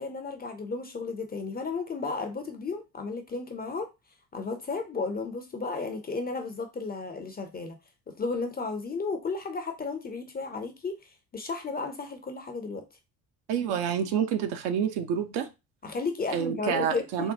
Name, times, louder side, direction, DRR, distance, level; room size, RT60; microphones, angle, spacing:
voice 1, 0.0-3.9 4.3-7.8 8.1-11.0 11.3-12.8 15.8-17.3, left 4 dB, 20° left, 0.5 m, -33 dB
voice 2, 13.5-15.5 16.3-17.3, right 8 dB, 55° right, 0.7 m, -28 dB
3.7 x 2.2 x 2.6 m
figure-of-eight pair, 50°, 50 cm